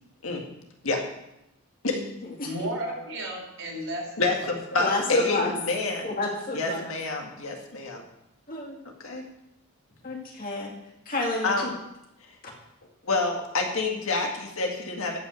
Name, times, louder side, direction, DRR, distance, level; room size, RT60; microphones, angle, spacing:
voice 1, 2.4-4.5, right 1 dB, 60° right, -2 dB, 4.3 m, -34 dB
voice 2, 4.2-6.1 6.5-8.0 9.0-9.2 11.4-11.7 13.0-15.2, left 3 dB, 70° left, 2 dB, 1.9 m, -28 dB
voice 3, 4.8-5.5 6.0-6.9 8.5-8.8 10.0-10.7 11.1-11.5, left 2 dB, 40° left, -1 dB, 2.4 m, -29 dB
13.5 x 5.9 x 6.3 m, 0.85 s
head